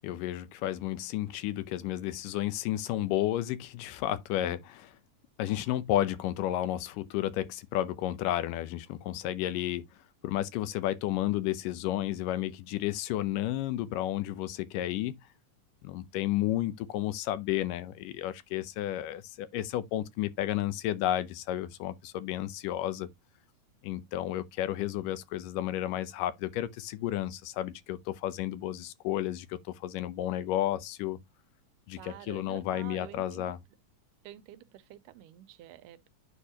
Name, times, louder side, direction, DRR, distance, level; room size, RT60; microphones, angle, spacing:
voice 1, 0.0-4.9 5.4-9.9 10.2-15.2 15.8-23.1 23.8-31.2 31.9-33.6, left 13 dB, 85° left, 2.4 m, -32 dB
voice 2, 32.0-33.5 34.2-36.1, right 13 dB, 90° right, 2.2 m, -48 dB
9.5 x 4.5 x 2.8 m
omnidirectional pair, 3.7 m